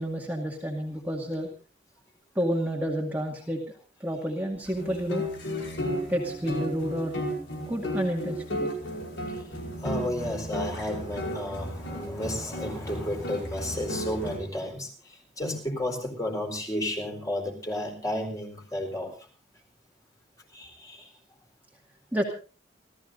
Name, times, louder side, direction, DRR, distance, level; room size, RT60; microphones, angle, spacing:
voice 1, 0.0-1.5 2.4-3.6 4.0-5.2 6.1-7.3 7.7-8.7 22.1-22.2, equal, 10° right, -1 dB, 2.1 m, -30 dB
sound 1, 4.7-14.4, equal, 90° left, 5.4 m, -34 dB
voice 2, 9.8-19.1 20.5-21.1, left 1 dB, 20° left, 2 dB, 4.4 m, -32 dB
29.5 x 14.0 x 2.6 m, 0.37 s
head